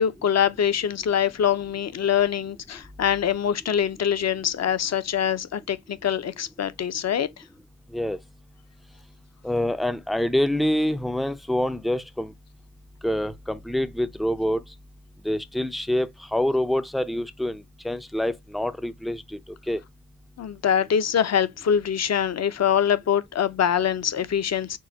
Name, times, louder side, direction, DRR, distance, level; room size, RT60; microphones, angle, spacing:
voice 1, 0.0-7.3 20.4-24.8, left 8 dB, 45° left, 0.6 m, -24 dB
voice 2, 9.4-12.3 13.0-14.6 15.2-17.6 17.8-19.2 19.7-19.8, left 1 dB, ahead, 0.4 m, -26 dB
6.2 x 2.2 x 2.7 m
cardioid pair, 85°, 38 cm